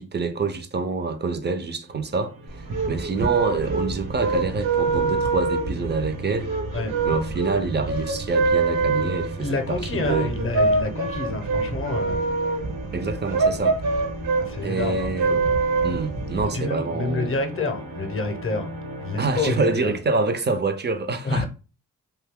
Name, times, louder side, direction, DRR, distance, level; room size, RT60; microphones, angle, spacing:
voice 1, 0.0-6.5 7.0-10.3 12.9-13.8 14.6-15.4 15.8-17.3 19.2-21.5, right 3 dB, 30° right, 0.5 m, -26 dB
sound 1, 1.8-19.7, right 1 dB, 80° right, 1.1 m, -37 dB
sound 2, 2.5-16.4, right 3 dB, 60° right, 0.8 m, -25 dB
voice 2, 9.4-12.2 14.4-15.1 16.5-18.7 19.0-20.0 21.2-21.5, left 3 dB, 35° left, 0.7 m, -28 dB
2.6 x 2.3 x 3.5 m
cardioid pair, 50°, 36 cm